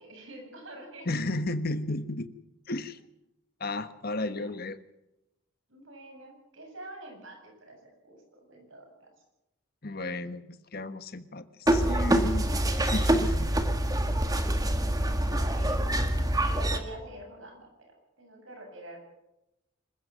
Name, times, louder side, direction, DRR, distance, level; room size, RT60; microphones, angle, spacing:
voice 1, 0.0-1.1 4.2-4.5 5.7-7.8 8.0-9.1 14.2-14.8 15.1-15.9 16.4-19.0, right 1 dB, 65° right, 2 dB, 7.7 m, -47 dB
voice 2, 1.0-2.3 2.7-3.0 3.6-4.8 9.8-13.5, left 2 dB, 45° left, 12 dB, 1.3 m, -33 dB
sound 1, 11.7-16.8, right 1 dB, 15° right, 1.8 m, -25 dB
26.0 x 15.0 x 7.6 m, 0.90 s
head